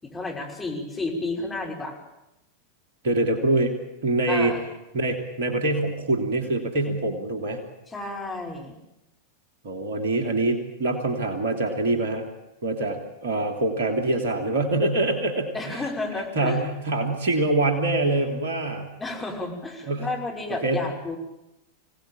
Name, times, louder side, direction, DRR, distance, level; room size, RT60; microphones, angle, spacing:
voice 1, 0.0-2.0 4.3-4.6 7.9-8.8 15.5-16.6 19.0-21.2, left 2 dB, 15° left, -1 dB, 5.9 m, -31 dB
voice 2, 3.0-3.7 4.0-4.5 4.9-7.6 9.6-12.3 12.6-15.8 16.4-18.9 19.9-20.1 20.6-20.8, right 2 dB, 55° right, 5 dB, 3.1 m, -24 dB
25.0 x 18.0 x 9.1 m, 0.91 s
figure-of-eight pair, 90°, 0 cm